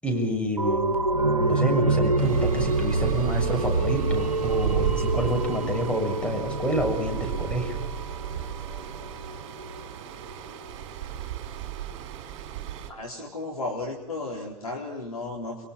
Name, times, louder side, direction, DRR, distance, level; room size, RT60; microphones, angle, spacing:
voice 1, 0.0-1.0 1.4-7.8, equal, 5° left, 2 dB, 6.6 m, -28 dB
sound 1, 0.6-9.9 10.3-10.4, right 3 dB, 85° right, 1.5 m, -27 dB
Stream, 2.2-12.9, right 11 dB, 50° right, 4.8 m, -35 dB
voice 2, 12.9-15.7, left 2 dB, 80° left, -1 dB, 4.1 m, -34 dB
30.0 x 23.0 x 6.4 m, 0.76 s
figure-of-eight pair, 90°, 18 cm